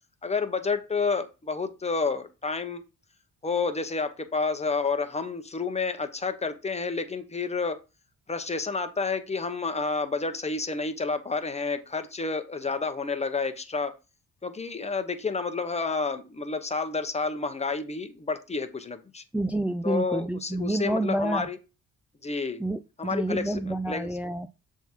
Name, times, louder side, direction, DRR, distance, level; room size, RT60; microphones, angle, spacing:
voice 1, 0.2-2.8 3.4-7.8 8.3-13.9 14.4-19.2 19.8-21.6 22.2-22.6 23.0-24.1, left 4 dB, 20° left, 1.0 m, -30 dB
voice 2, 19.3-21.5 22.6-24.5, right 1 dB, 5° right, 0.4 m, -28 dB
7.0 x 3.7 x 4.5 m
cardioid pair, 90°, 30 cm